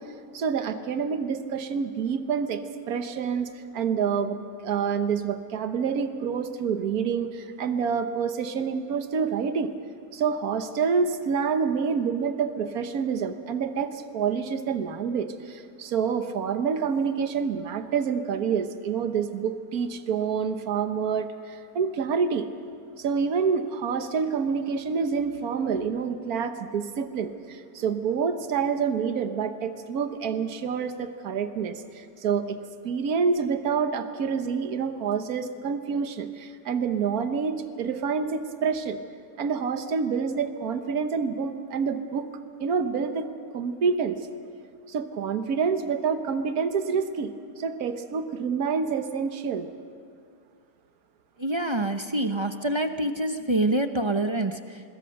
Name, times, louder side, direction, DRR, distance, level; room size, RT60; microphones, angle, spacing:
voice 1, 0.3-2.6 2.9-9.7 10.1-22.5 23.0-32.6 32.8-39.0 39.4-42.2 42.6-43.3 43.5-44.2 44.9-49.7, right 6 dB, 70° right, 8 dB, 1.6 m, -27 dB
voice 2, 51.4-54.8, right 1 dB, 25° right, 7 dB, 0.6 m, -26 dB
26.0 x 21.5 x 6.5 m, 2.3 s
omnidirectional pair, 1.6 m